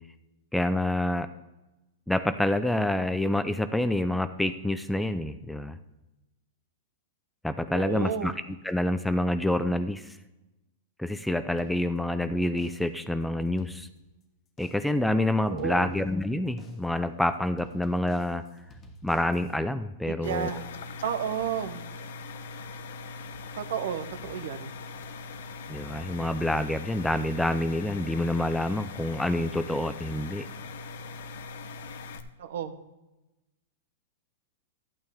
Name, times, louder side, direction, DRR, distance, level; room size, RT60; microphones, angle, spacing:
voice 1, 0.5-1.3 2.1-5.8 7.4-8.3 8.6-10.1 11.0-13.9 14.6-18.4 19.0-20.6 25.7-30.5, left 1 dB, 5° left, 11 dB, 0.4 m, -27 dB
voice 2, 7.7-8.3 15.5-15.9 20.0-20.7 21.0-21.8 23.6-24.7 32.4-32.8, right 9 dB, 70° right, 10 dB, 1.0 m, -32 dB
sound 1, 11.6-12.2 12.6-13.1 13.5-14.2 14.6-15.1 15.6-16.2 16.6-17.1 17.6-19.6, equal, 20° left, 1.1 m, -52 dB
sound 2, 20.2-32.2, left 4 dB, 70° left, 0.8 m, -41 dB
12.5 x 8.8 x 3.6 m, 1.0 s
hypercardioid pair, 140°, 0 cm